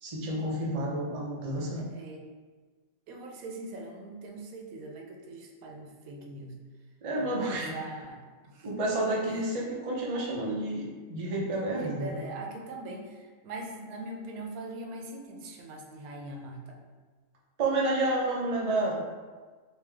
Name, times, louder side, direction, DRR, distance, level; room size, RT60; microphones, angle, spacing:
voice 1, 0.0-1.8 7.0-7.7 8.6-12.1 17.6-19.0, right 2 dB, 45° right, -3 dB, 0.4 m, -30 dB
voice 2, 1.6-2.2 3.1-6.6 7.2-8.7 9.2-9.4 11.8-16.8, right 2 dB, 80° right, 1 dB, 1.0 m, -42 dB
3.3 x 2.9 x 3.4 m, 1.4 s
omnidirectional pair, 1.5 m